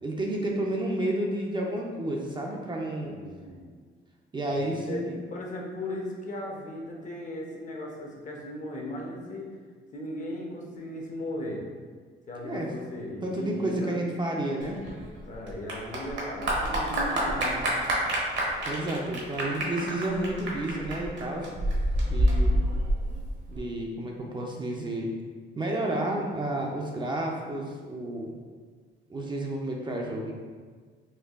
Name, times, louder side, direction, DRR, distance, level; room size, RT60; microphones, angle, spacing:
voice 1, 0.0-3.1 4.3-5.2 12.4-12.7 13.2-14.8 18.6-21.5 22.0-22.6 23.5-25.1 25.5-28.3 29.1-30.3, right 1 dB, 25° right, -1 dB, 0.5 m, -31 dB
voice 2, 3.0-3.7 4.5-5.0 5.3-9.5 9.9-11.6 12.3-14.0 15.3-17.6, left 1 dB, 40° left, -1 dB, 0.7 m, -37 dB
Clapping / Applause, 14.6-23.6, right 1 dB, 65° right, 1.0 m, -28 dB
4.4 x 2.4 x 2.4 m, 1.5 s
cardioid pair, 90°, 20 cm